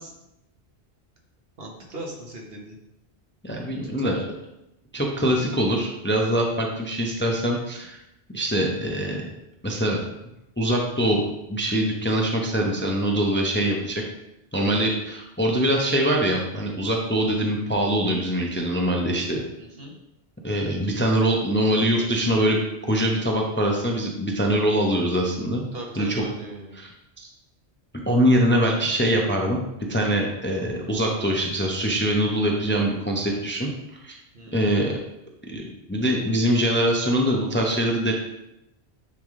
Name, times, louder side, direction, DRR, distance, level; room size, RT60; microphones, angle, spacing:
voice 1, 1.6-2.8 4.0-4.3 19.6-19.9 25.7-26.8 34.3-34.7, right 1 dB, 60° right, -1 dB, 1.4 m, -39 dB
voice 2, 3.4-4.2 4.9-8.0 8.3-9.3 9.6-10.0 10.6-11.2 11.5-14.0 14.5-19.4 20.4-22.6 22.9-25.6 26.0-26.2 26.8-26.9 27.2-27.3 28.1-29.6 29.9-33.7 34.0-34.2 34.5-35.0 35.5-35.6 35.9-38.1, right 1 dB, 10° left, 0 dB, 0.6 m, -23 dB
9.4 x 3.5 x 3.7 m, 0.87 s
omnidirectional pair, 1.1 m